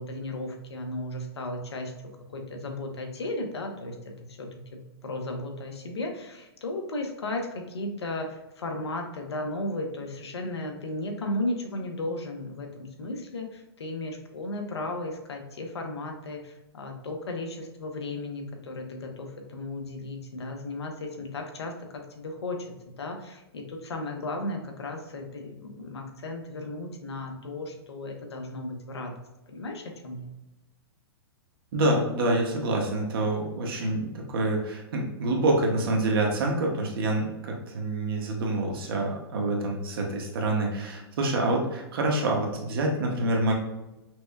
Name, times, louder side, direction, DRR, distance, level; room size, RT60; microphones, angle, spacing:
voice 1, 0.0-1.9 2.3-22.6 22.9-29.2 29.5-30.3, left 2 dB, 85° left, 3 dB, 0.9 m, -35 dB
voice 2, 31.7-43.5, right 2 dB, 60° right, 0 dB, 1.0 m, -27 dB
5.8 x 2.2 x 2.3 m, 0.98 s
hypercardioid pair, 130°, 13 cm